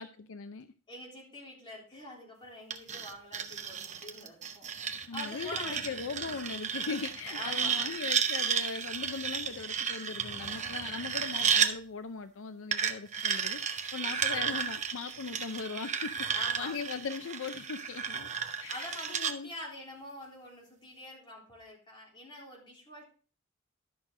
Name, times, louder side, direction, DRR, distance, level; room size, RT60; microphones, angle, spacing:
voice 1, 0.0-0.7 5.1-13.6 13.9-18.3 18.6-19.5, left 5 dB, 65° left, 10 dB, 0.5 m, -39 dB
voice 2, 0.9-5.9 7.3-8.0 14.0-14.6 16.3-16.7 18.3-23.0, left 1 dB, 25° left, -3 dB, 3.7 m, -46 dB
sound 1, 2.7-11.7 12.7-19.3, right 7 dB, 35° right, 0.8 m, -33 dB
12.0 x 6.3 x 3.7 m, 0.39 s
head